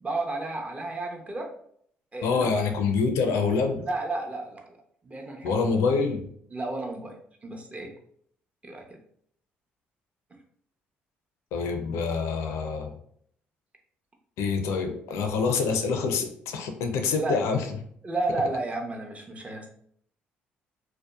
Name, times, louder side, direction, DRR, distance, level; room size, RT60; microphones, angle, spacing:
voice 1, 0.0-1.5 2.1-2.5 3.9-4.8 5.0-5.7 6.5-7.1 7.4-7.9 8.6-8.8 17.2-17.4 18.0-19.7, right 2 dB, 25° right, 2 dB, 0.7 m, -32 dB
voice 2, 2.2-3.8 5.4-6.3 11.5-12.9 14.4-17.7, left 5 dB, 75° left, 5 dB, 0.4 m, -26 dB
2.7 x 2.1 x 2.3 m, 0.64 s
hypercardioid pair, 60°, 5 cm